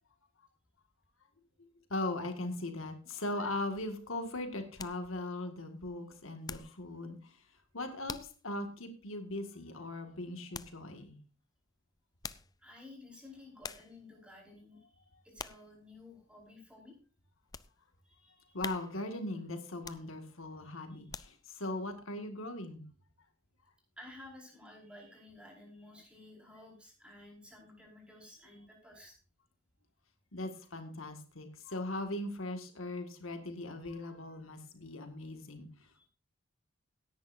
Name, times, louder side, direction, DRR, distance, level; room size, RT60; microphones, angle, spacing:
voice 1, 1.6-7.4 7.7-11.2 18.5-22.8 30.3-35.7, left 2 dB, 80° left, 5 dB, 1.9 m, -39 dB
sound 1, 4.2-6.9 7.2-7.6 8.1-8.4 8.9-9.0 10.5-10.8 12.0-12.6 13.2-13.3 13.6-14.0 14.5-14.8 15.4-15.7 16.2-16.3 16.9-17.8 18.2-18.3 18.6-19.2 19.7-20.4 20.9-21.6 22.1-22.2, left 5 dB, 20° left, 0.4 m, -46 dB
voice 2, 12.6-17.0 18.0-18.6 20.6-21.0 24.0-29.2 35.9-36.1, left 2 dB, 5° right, -1 dB, 5.0 m, -54 dB
17.5 x 10.5 x 2.7 m, 0.36 s
head